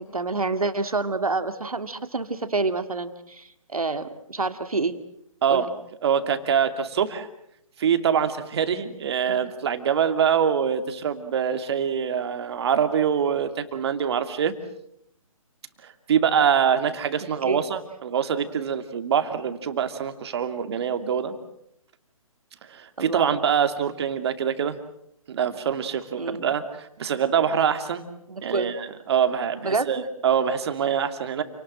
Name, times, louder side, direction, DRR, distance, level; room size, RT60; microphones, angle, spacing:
voice 1, 0.0-5.0 5.5-5.7 9.3-9.5 17.4-17.6 23.0-23.3 26.2-26.5 28.3-28.8 29.6-30.1, right 3 dB, 85° right, 10 dB, 2.3 m, -28 dB
voice 2, 6.0-7.3 7.8-14.5 16.1-21.4 22.7-24.8 25.3-28.1 28.4-31.4, right 8 dB, 50° right, 9 dB, 2.6 m, -24 dB
28.5 x 19.5 x 7.6 m, 0.74 s
figure-of-eight pair, 140°, 18 cm